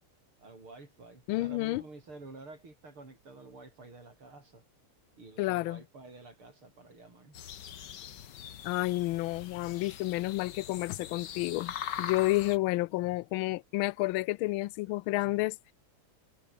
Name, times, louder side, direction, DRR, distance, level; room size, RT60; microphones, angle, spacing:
voice 1, 0.4-4.6 5.2-7.4, right 3 dB, 80° right, 6.9 m, -50 dB
voice 2, 1.3-1.8 5.4-5.8 8.6-15.7, left 19 dB, 75° left, 1.4 m, -30 dB
sound 1, 7.3-12.6, left 9 dB, 60° left, 1.7 m, -42 dB
omnidirectional pair, 2.4 m